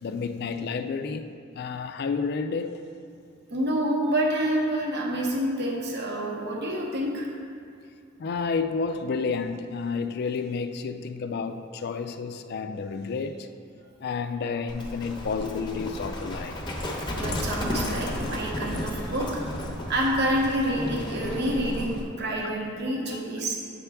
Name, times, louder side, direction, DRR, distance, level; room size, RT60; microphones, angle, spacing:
voice 1, 0.0-2.8 8.2-13.5 14.0-16.6 22.4-22.5 23.0-23.3, left 5 dB, 50° left, 0.3 m, -31 dB
voice 2, 3.5-7.3 17.1-19.4 19.9-23.6, right 1 dB, 55° right, 0.9 m, -28 dB
Livestock farm animals working animals, 14.7-22.0, left 1 dB, 20° left, 0.7 m, -33 dB
8.4 x 5.7 x 3.4 m
head